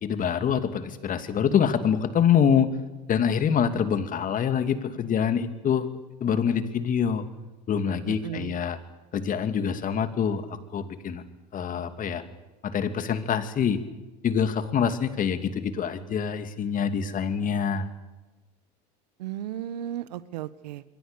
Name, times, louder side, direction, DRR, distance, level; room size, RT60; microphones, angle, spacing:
voice 1, 0.0-2.7 3.1-5.9 6.2-7.2 7.7-8.8 9.1-10.4 10.7-11.2 11.5-12.2 12.6-13.8 14.2-17.9, left 7 dB, 40° left, 10 dB, 2.6 m, -25 dB
voice 2, 8.1-8.6 19.2-20.8, right 12 dB, 85° right, 16 dB, 1.2 m, -35 dB
27.0 x 23.0 x 7.0 m, 1.1 s
hypercardioid pair, 90°, 21 cm